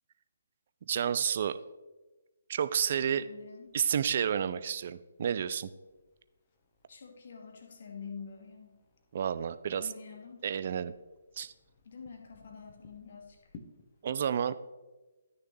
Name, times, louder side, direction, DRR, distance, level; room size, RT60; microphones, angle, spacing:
voice 1, 0.9-1.6 2.5-3.3 3.7-5.7 9.1-9.9 10.4-10.9 11.4-11.5 14.0-14.6, right 8 dB, 40° right, 13 dB, 0.4 m, -30 dB
sound 1, 2.7-14.2, left 4 dB, 30° left, 1.0 m, -61 dB
voice 2, 3.0-3.7 6.9-8.8 9.7-10.4 11.8-13.5, left 6 dB, 50° left, 2 dB, 1.6 m, -47 dB
12.5 x 6.5 x 3.2 m, 1.2 s
figure-of-eight pair, 135°, 0 cm